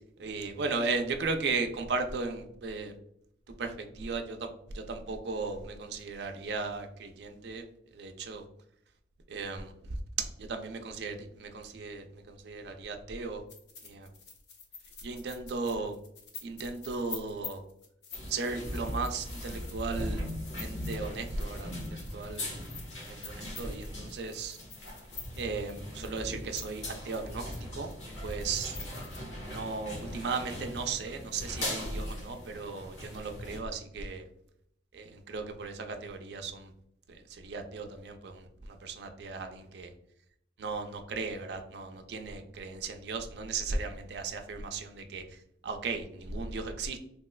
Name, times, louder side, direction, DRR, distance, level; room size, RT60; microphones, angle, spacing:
voice 1, 0.2-2.9 3.5-7.6 7.9-8.5 9.3-13.4 13.8-14.1 15.0-15.9 16.4-17.6 18.3-20.3 20.5-22.5 23.0-24.6 25.4-27.9 28.2-28.8 29.4-34.2 34.9-36.7 37.1-39.9 40.6-47.0, right 4 dB, 65° right, 5 dB, 0.4 m, -36 dB
sound 1, 13.5-27.6 27.9-29.2, left 5 dB, 65° left, 0.7 m, -47 dB
sound 2, 18.1-33.6, left 1 dB, 85° left, 1.3 m, -40 dB
3.1 x 2.9 x 2.2 m, 0.73 s
head